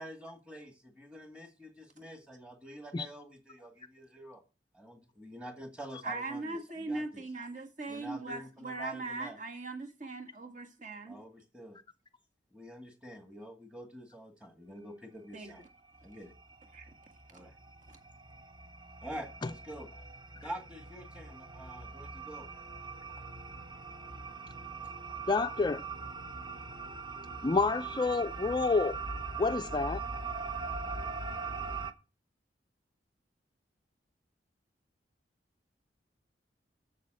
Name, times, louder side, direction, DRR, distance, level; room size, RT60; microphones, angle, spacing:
voice 1, 0.0-4.4 4.7-7.2 7.9-9.4 11.1-11.8 12.5-15.6 16.0-16.3 17.3-17.5 19.0-19.9 20.4-22.5, equal, 5° right, 1.8 m, -47 dB
voice 2, 6.0-11.2 15.3-15.5 16.7-16.9, right 3 dB, 45° right, 1.8 m, -39 dB
sound 1, 15.5-15.6 15.9-31.9, right 4 dB, 25° right, 0.7 m, -41 dB
voice 3, 25.3-25.8 27.4-29.0 29.4-30.0, left 3 dB, 25° left, 0.4 m, -28 dB
7.5 x 6.9 x 7.6 m
head